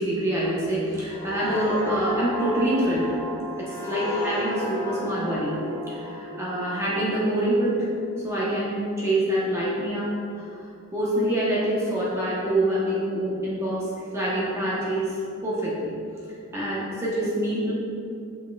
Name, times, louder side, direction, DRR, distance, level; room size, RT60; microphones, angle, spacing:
voice 1, 0.0-3.2 3.6-5.6 5.9-7.9 8.2-10.5 10.9-15.2 15.4-15.9 16.5-17.7, right 1 dB, 15° right, -8 dB, 0.9 m, -26 dB
sound 1, 1.1-8.5 8.9-9.2, equal, 15° left, 0.6 m, -34 dB
7.1 x 5.8 x 2.3 m, 2.6 s
head